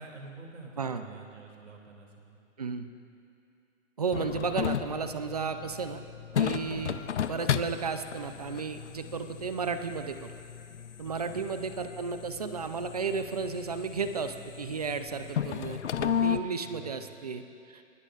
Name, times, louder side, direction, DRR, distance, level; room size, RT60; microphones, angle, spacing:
voice 1, 0.0-2.4 11.0-11.4 16.6-17.3, right 3 dB, 65° right, 1 dB, 2.7 m, -48 dB
voice 2, 0.8-1.1 2.6-2.9 4.0-6.0 6.4-10.3 11.0-17.4 17.7-17.8, right 5 dB, 30° right, 9 dB, 0.5 m, -33 dB
sound 1, 4.1-16.4, left 8 dB, 60° left, 0.6 m, -34 dB
28.5 x 12.0 x 2.5 m, 2.7 s
hypercardioid pair, 155°, 40 cm